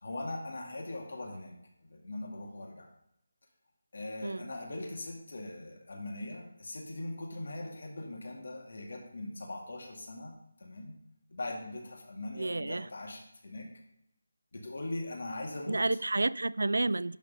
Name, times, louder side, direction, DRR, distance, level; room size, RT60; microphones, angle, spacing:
voice 1, 0.0-1.6 1.8-2.9 3.9-10.3 10.6-11.0 11.3-13.7 14.5-15.8, left 2 dB, 55° left, 2.1 m, -40 dB
voice 2, 12.4-12.9 15.7-17.2, right 2 dB, 80° right, 0.3 m, -30 dB
11.0 x 4.3 x 5.5 m
figure-of-eight pair, 175°, 0 cm